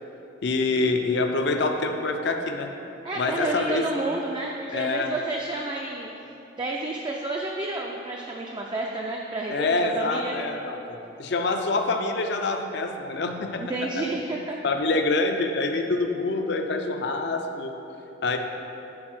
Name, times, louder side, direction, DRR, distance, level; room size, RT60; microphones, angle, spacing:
voice 1, 0.4-2.7 3.2-3.8 4.7-5.1 9.5-13.6 14.6-17.7 18.2-18.4, left 3 dB, 60° left, 4 dB, 0.5 m, -26 dB
voice 2, 3.0-6.1 6.6-9.7 9.9-10.3 13.6-14.6, right 2 dB, 20° right, -1 dB, 0.3 m, -30 dB
6.2 x 4.0 x 6.1 m, 2.9 s
head